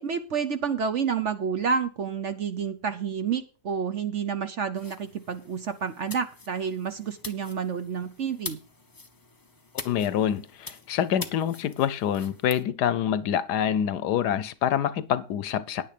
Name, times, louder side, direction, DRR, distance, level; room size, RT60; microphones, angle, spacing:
voice 1, 0.0-8.6, right 6 dB, 55° right, 0.9 m, -29 dB
sound 1, 4.7-12.6, left 3 dB, 25° left, 0.4 m, -44 dB
voice 2, 9.8-15.8, left 9 dB, 75° left, 1.3 m, -26 dB
9.7 x 9.4 x 5.0 m
omnidirectional pair, 1.8 m